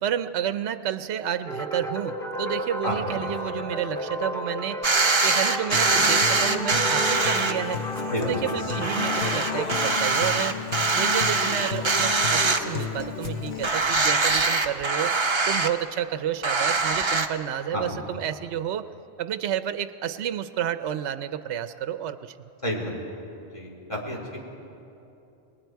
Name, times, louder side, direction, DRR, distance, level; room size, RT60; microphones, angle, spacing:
voice 1, 0.0-4.8 5.2-7.8 8.2-10.6 10.9-15.1 15.5-18.9 19.2-22.4, right 10 dB, 75° right, 11 dB, 0.9 m, -30 dB
sound 1, 1.5-9.7, equal, 5° left, 1.6 m, -32 dB
sound 2, 4.8-7.5 8.0-8.1 8.5-8.6 8.8-13.0 13.2-13.3 13.6-15.7 16.4-17.3, right 3 dB, 30° right, 0.8 m, -23 dB
Human voice / Acoustic guitar, 5.7-13.7, left 7 dB, 65° left, 1.2 m, -33 dB
voice 2, 22.6-22.9 23.4-24.4, equal, 25° left, -1 dB, 3.4 m, -30 dB
28.0 x 20.5 x 4.6 m, 2.8 s
omnidirectional pair, 1.2 m